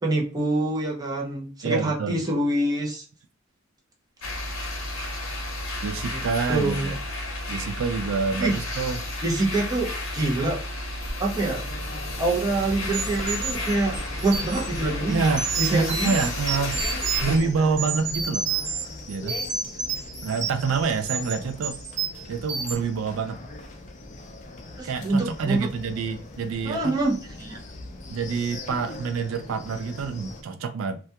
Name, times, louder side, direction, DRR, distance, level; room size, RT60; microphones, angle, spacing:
voice 1, 0.0-3.0 6.1-6.2 6.5-6.9 8.4-8.6 9.2-10.6 11.2-11.6 12.2-15.2 15.6-16.1 24.8-25.7 26.6-27.6, right 2 dB, 20° right, 0.6 m, -25 dB
voice 2, 1.6-2.2 5.8-7.0 7.5-9.0 15.1-16.8 17.2-18.5 19.1-19.4 20.2-21.8 22.3-23.4 24.8-26.9 28.1-31.0, right 5 dB, 80° right, 0.3 m, -27 dB
sound 1, 4.2-17.4, left 1 dB, 85° left, 0.7 m, -32 dB
sound 2, 11.4-30.4, left 2 dB, 35° left, 0.4 m, -40 dB
sound 3, 12.9-14.7 15.2-17.4 17.8-18.8 19.1-20.7 21.0-21.3 21.6-22.2 22.5-22.8, right 6 dB, 60° right, 1.0 m, -30 dB
2.3 x 2.2 x 2.7 m
head